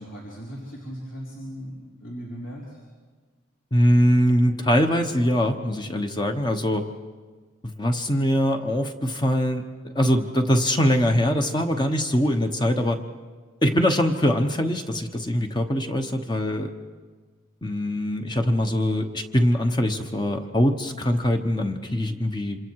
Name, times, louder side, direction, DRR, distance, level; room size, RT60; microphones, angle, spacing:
voice 1, 0.0-2.8, equal, 65° left, -5 dB, 3.9 m, -38 dB
voice 2, 3.7-6.9 7.6-9.6 9.9-13.0 13.6-16.7 17.6-22.6, equal, 20° left, 5 dB, 1.0 m, -22 dB
26.5 x 26.5 x 4.7 m, 1.4 s
head